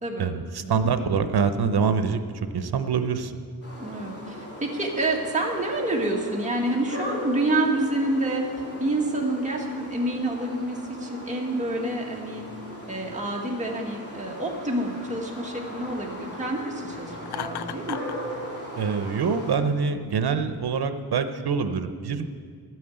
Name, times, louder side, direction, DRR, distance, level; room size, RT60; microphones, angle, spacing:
voice 1, 0.2-3.3 18.8-22.3, right 5 dB, 75° right, 9 dB, 0.9 m, -25 dB
sound 1, 3.6-19.5, equal, 35° left, 3.4 m, -39 dB
voice 2, 3.8-8.4 8.8-12.4 12.9-18.0, right 1 dB, 20° right, -1 dB, 2.0 m, -28 dB
Laughter, 17.2-18.2, left 11 dB, 85° left, 0.5 m, -34 dB
12.5 x 9.3 x 7.9 m, 2.1 s
wide cardioid pair, 120°, 38 cm